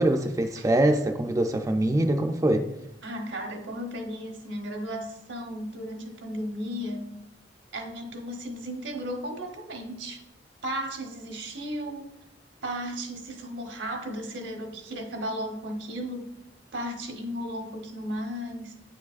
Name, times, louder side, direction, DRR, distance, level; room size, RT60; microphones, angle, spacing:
voice 1, 0.0-2.7, right 1 dB, 20° right, 4 dB, 0.3 m, -23 dB
voice 2, 3.0-7.1 7.7-10.2 10.6-12.1 12.6-16.4 16.7-18.8, equal, 80° right, 3 dB, 1.0 m, -35 dB
8.6 x 4.7 x 2.4 m, 0.86 s
head